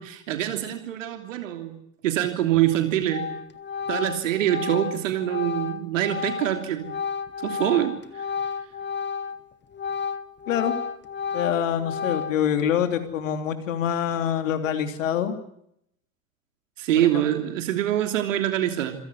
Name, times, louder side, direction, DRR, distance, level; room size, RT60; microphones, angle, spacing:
voice 1, 0.0-1.8 2.0-3.3 3.9-6.9 7.4-8.2 16.8-18.9, right 12 dB, 65° right, 6 dB, 3.2 m, -25 dB
Organ, 2.5-2.8 3.1-9.4 9.7-12.6, left 6 dB, 25° left, 1.6 m, -32 dB
voice 2, 11.3-15.4 17.0-17.2, left 9 dB, 65° left, 8 dB, 3.1 m, -25 dB
27.5 x 17.0 x 9.6 m, 0.75 s
figure-of-eight pair, 70°, 41 cm